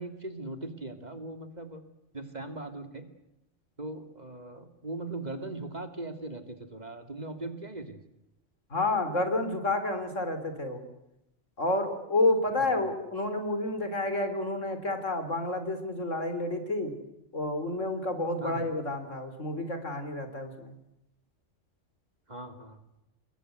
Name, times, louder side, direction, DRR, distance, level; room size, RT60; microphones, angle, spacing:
voice 1, 0.0-1.8 2.1-3.1 3.8-8.0 12.6-12.8 18.4-18.7 22.3-22.8, right 2 dB, 35° right, 8 dB, 2.7 m, -39 dB
voice 2, 8.7-10.8 11.6-16.9 17.3-20.7, left 2 dB, 85° left, 9 dB, 4.0 m, -30 dB
28.5 x 21.5 x 7.9 m, 0.88 s
omnidirectional pair, 1.3 m